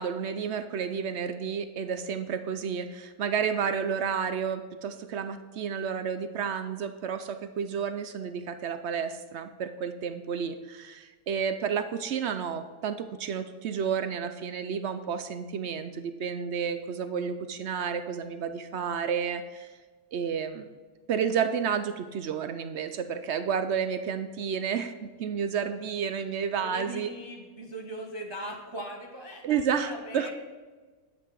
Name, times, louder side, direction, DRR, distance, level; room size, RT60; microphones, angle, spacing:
voice 1, 0.0-19.7 20.1-20.7 21.1-27.1 29.4-30.3, right 7 dB, 60° right, 10 dB, 0.7 m, -31 dB
voice 2, 26.6-30.3, right 1 dB, 25° right, 0 dB, 0.7 m, -40 dB
10.0 x 7.8 x 4.6 m, 1.4 s
omnidirectional pair, 1.6 m